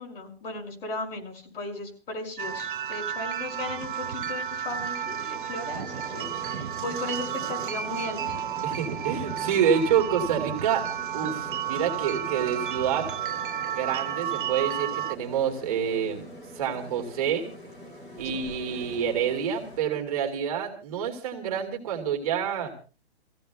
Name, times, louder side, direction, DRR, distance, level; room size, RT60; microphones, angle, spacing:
voice 1, 0.0-8.4 18.3-18.4, left 2 dB, 65° left, 1 dB, 5.8 m, -36 dB
sound 1, 2.4-15.2, right 10 dB, 55° right, 0.7 m, -32 dB
sound 2, 5.7-19.8, right 1 dB, 10° left, 0.7 m, -43 dB
voice 2, 8.6-10.8 11.1-13.1 13.7-16.3 16.6-17.5 18.2-22.7, right 8 dB, 35° right, 3 dB, 2.4 m, -27 dB
29.5 x 15.5 x 2.3 m, 0.34 s
hypercardioid pair, 180°, 32 cm